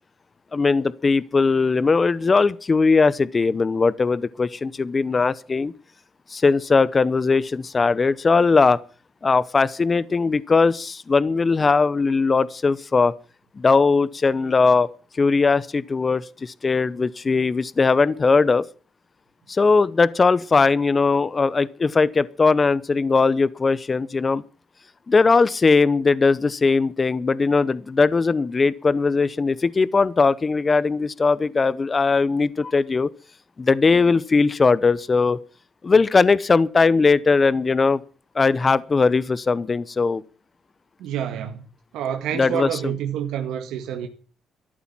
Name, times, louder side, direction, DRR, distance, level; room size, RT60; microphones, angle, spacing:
voice 1, 0.5-5.7 6.3-8.8 9.2-13.1 13.6-14.9 15.2-18.6 19.5-24.4 25.1-33.1 33.6-35.4 35.8-38.0 38.4-40.2 42.3-42.7, left 4 dB, 30° left, 0.7 m, -19 dB
voice 2, 41.0-41.6 41.9-44.1, right 9 dB, 85° right, 1.9 m, -28 dB
13.5 x 11.5 x 7.3 m
cardioid pair, 100°, 0 cm